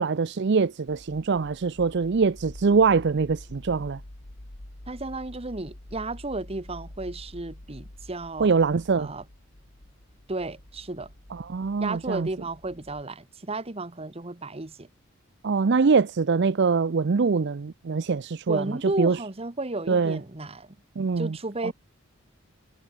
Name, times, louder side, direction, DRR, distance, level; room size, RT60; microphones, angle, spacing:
voice 1, 0.0-4.0 8.4-9.1 11.3-12.3 15.4-19.2 19.9-20.2 21.0-21.4 21.6-21.7, right 5 dB, 55° right, 0.5 m, -23 dB
sound 1, 0.9-13.0, left 1 dB, 85° left, 2.9 m, -47 dB
voice 2, 4.9-8.5 9.0-9.2 10.3-11.1 11.8-14.9 18.5-20.7 21.2-21.7, right 2 dB, 30° right, 1.2 m, -33 dB
head